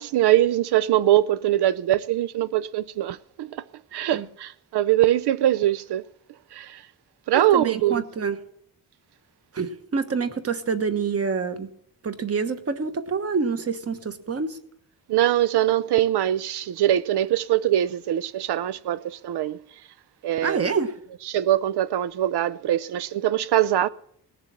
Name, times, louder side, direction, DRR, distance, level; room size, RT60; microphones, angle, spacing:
voice 1, 0.0-3.6 3.9-6.0 6.5-6.8 7.3-8.0 15.1-19.6 20.2-20.8 21.2-23.9, right 13 dB, 85° right, 0.6 m, -22 dB
voice 2, 7.3-8.4 9.5-11.7 12.0-14.6 20.4-20.9, right 5 dB, 40° right, 1.3 m, -27 dB
19.0 x 6.8 x 8.6 m
wide cardioid pair, 150°, 39 cm